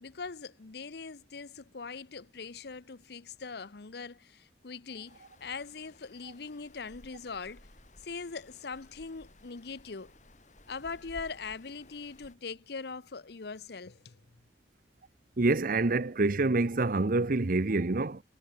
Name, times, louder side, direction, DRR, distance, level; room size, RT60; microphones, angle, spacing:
voice 1, 0.0-7.7 8.0-10.1 10.7-14.2, left 4 dB, 65° left, 0.9 m, -41 dB
sound 1, 5.0-12.3, left 1 dB, 45° left, 7.8 m, -56 dB
voice 2, 15.4-18.2, right 3 dB, 55° right, 0.9 m, -27 dB
head